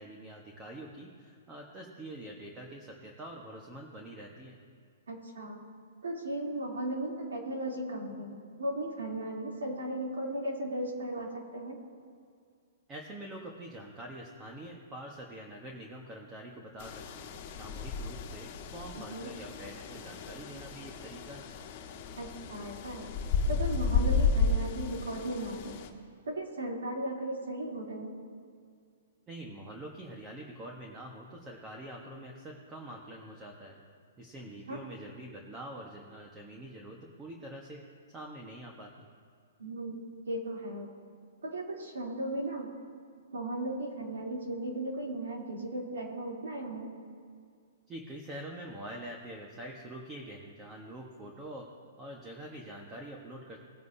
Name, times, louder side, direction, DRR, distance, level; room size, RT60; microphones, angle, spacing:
voice 1, 0.0-4.6 12.9-21.4 29.3-33.8 34.2-37.8 38.1-39.1 47.9-51.7 52.0-53.6, right 1 dB, 15° right, 0 dB, 1.3 m, -45 dB
voice 2, 5.1-5.6 6.0-11.8 19.1-19.3 22.2-23.1 23.5-25.7 26.2-28.1 34.7-34.8 39.6-40.9 41.4-42.7 43.3-46.9, right 1 dB, 90° right, -2 dB, 3.2 m, -36 dB
sound 1, 16.8-25.9, left 4 dB, 45° left, 1.4 m, -33 dB
19.5 x 9.1 x 2.8 m, 2.2 s
hypercardioid pair, 145°, 0 cm